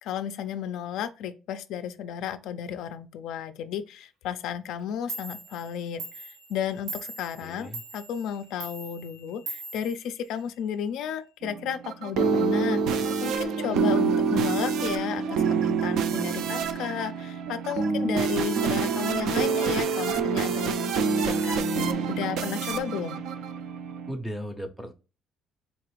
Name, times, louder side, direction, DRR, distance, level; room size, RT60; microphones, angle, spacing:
voice 1, 0.0-23.2, left 8 dB, 75° left, 0.3 m, -33 dB
Clock, 4.8-4.9 5.1-10.7, right 3 dB, 90° right, 0.8 m, -41 dB
voice 2, 7.4-7.8 24.1-24.9, equal, 5° right, 0.5 m, -36 dB
sound 1, 11.4-24.1, right 5 dB, 70° right, 0.4 m, -27 dB
3.9 x 2.4 x 3.0 m
cardioid pair, 140°, 0 cm